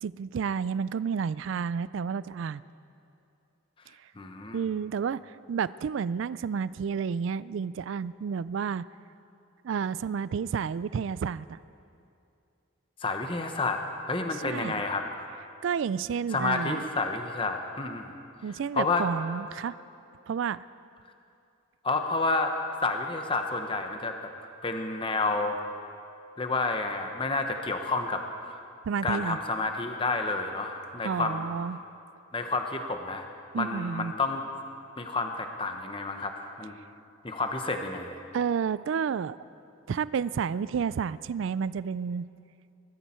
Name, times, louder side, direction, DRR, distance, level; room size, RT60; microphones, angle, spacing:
voice 1, 0.0-2.6 4.5-8.9 9.6-11.6 14.4-14.8 15.6-16.8 18.4-19.7 20.3-20.6 28.9-29.4 31.0-31.8 33.5-34.1 38.3-39.4 39.9-42.3, right 6 dB, 65° right, 18 dB, 0.3 m, -30 dB
voice 2, 4.2-4.6 13.0-13.8 14.1-15.0 16.3-18.1 18.7-19.0 21.8-22.5 22.8-24.1 24.6-25.6 26.4-28.2 28.5-28.6 29.0-31.4 32.3-33.3 33.5-34.4 35.0-36.7 37.2-38.2, left 3 dB, 25° left, 5 dB, 0.9 m, -30 dB
21.0 x 14.0 x 4.4 m, 2.5 s
head